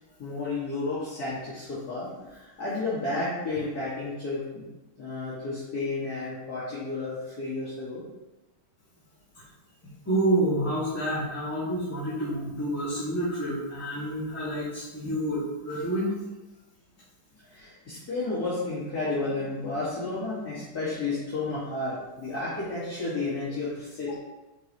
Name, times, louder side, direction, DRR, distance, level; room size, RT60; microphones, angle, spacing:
voice 1, 0.2-4.6 5.0-8.0 17.5-24.2, left 3 dB, 45° left, -12 dB, 2.4 m, -32 dB
voice 2, 10.1-16.2, right 1 dB, 5° left, -12 dB, 2.0 m, -28 dB
9.0 x 4.9 x 3.1 m, 1.1 s
omnidirectional pair, 2.3 m